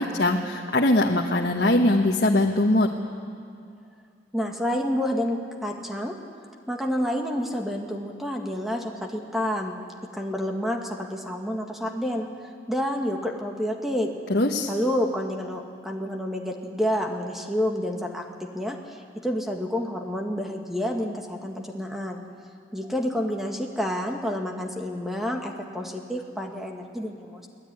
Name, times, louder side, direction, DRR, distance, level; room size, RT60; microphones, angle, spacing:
voice 1, 0.0-2.9 14.3-14.7, left 1 dB, 65° left, 0 dB, 1.4 m, -21 dB
voice 2, 4.3-6.2 6.7-9.8 10.1-14.1 14.7-22.2 22.7-27.5, equal, ahead, 2 dB, 1.7 m, -29 dB
23.5 x 17.0 x 9.7 m, 2.4 s
head